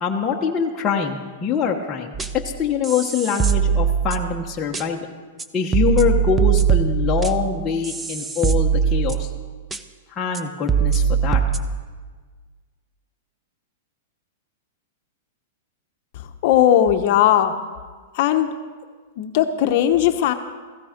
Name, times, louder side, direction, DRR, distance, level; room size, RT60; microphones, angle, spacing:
voice 1, 0.0-5.1 5.5-9.3 10.1-11.4, left 6 dB, 15° left, -2 dB, 1.2 m, -24 dB
sound 1, 2.1-2.5 2.8-4.4 4.7-4.8 5.4-5.5 5.7-9.4 9.7-9.8 10.3-10.4 10.7-11.6, right 7 dB, 10° right, 0.7 m, -21 dB
voice 2, 16.1-17.5 18.1-18.5 19.2-20.3, left 11 dB, 45° left, 6 dB, 1.0 m, -18 dB
16.0 x 16.0 x 5.2 m, 1.5 s
supercardioid pair, 155°, 0 cm